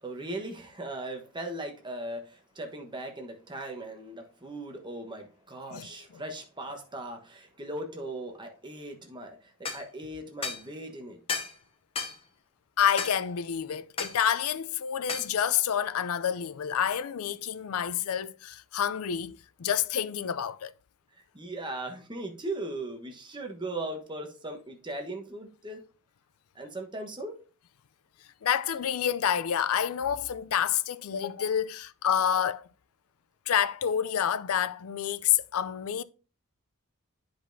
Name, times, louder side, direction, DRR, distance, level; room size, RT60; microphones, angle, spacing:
voice 1, 0.0-9.4 9.7-11.4 21.3-25.9 26.5-27.4, right 2 dB, 20° right, 1.1 m, -38 dB
voice 2, 5.7-6.2 12.8-20.7 28.4-32.7 33.5-36.0, left 9 dB, 80° left, 0.4 m, -28 dB
sound 1, 9.6-9.8 10.4-10.6 11.3-11.6 12.0-12.2 13.0-13.2 14.0-14.2 15.1-15.3, left 5 dB, 25° left, 0.7 m, -33 dB
9.9 x 5.2 x 2.7 m
head